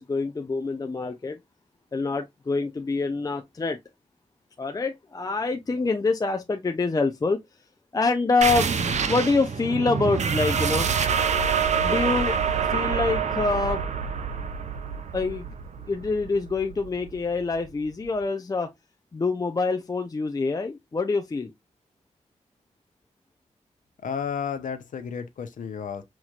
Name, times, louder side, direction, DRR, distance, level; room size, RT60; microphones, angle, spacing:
voice 1, 0.0-1.4 1.9-3.8 4.6-7.4 7.9-8.7 9.1-10.9 11.8-13.8 15.1-15.5 15.9-18.7 19.1-21.5, left 3 dB, 30° left, 0.5 m, -26 dB
sound 1, 8.4-17.6, right 6 dB, 65° right, 0.6 m, -26 dB
voice 2, 24.0-26.0, left 7 dB, 85° left, 0.8 m, -32 dB
5.6 x 3.1 x 2.4 m
wide cardioid pair, 95°, 13 cm